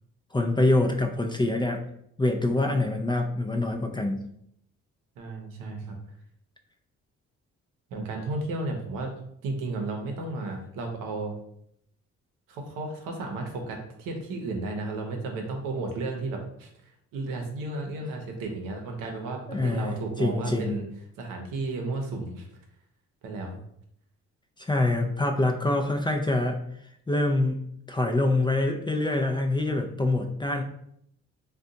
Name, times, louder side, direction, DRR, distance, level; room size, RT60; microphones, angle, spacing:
voice 1, 0.3-1.8 2.2-4.2 19.5-20.8 24.6-26.6 27.1-27.6 27.9-30.6, left 2 dB, 15° left, 4 dB, 0.4 m, -25 dB
voice 2, 5.2-6.0 7.9-9.1 9.4-11.3 12.5-20.8 21.2-22.5 23.2-23.6, right 2 dB, 80° right, 2 dB, 0.7 m, -33 dB
2.5 x 2.3 x 3.8 m, 0.72 s
supercardioid pair, 60°, 32 cm